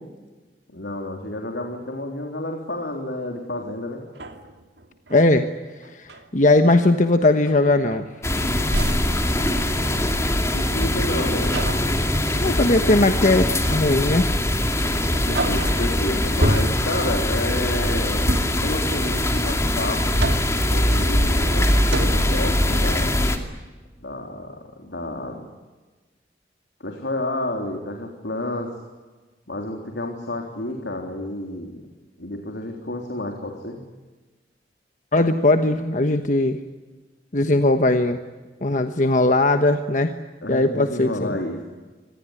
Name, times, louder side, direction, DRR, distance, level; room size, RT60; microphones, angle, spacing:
voice 1, 0.7-4.0 10.2-11.6 15.1-20.1 20.7-21.7 22.0-23.2 24.0-25.4 26.8-28.7 29.5-31.8 32.2-33.8 40.4-41.6, left 1 dB, 85° left, 2 dB, 3.6 m, -30 dB
sound 1, 3.5-3.6 4.1-5.3 5.8-6.2 6.8-7.0 7.4-8.3 8.7-10.2 11.5-12.0 13.6-14.1 14.5-14.6 15.1-15.9 16.4-17.0 18.2-18.7 19.9-20.7 21.4-21.5 21.9-22.4, right 1 dB, 80° right, 2.6 m, -28 dB
voice 2, 5.1-5.5 5.9-8.1 12.4-14.3 35.1-36.6 37.3-38.2 38.6-40.1 40.5-41.4, left 2 dB, 45° left, 7 dB, 1.2 m, -19 dB
sound 2, 8.2-23.4, left 1 dB, 15° left, 2.4 m, -22 dB
26.0 x 19.5 x 9.8 m, 1.3 s
head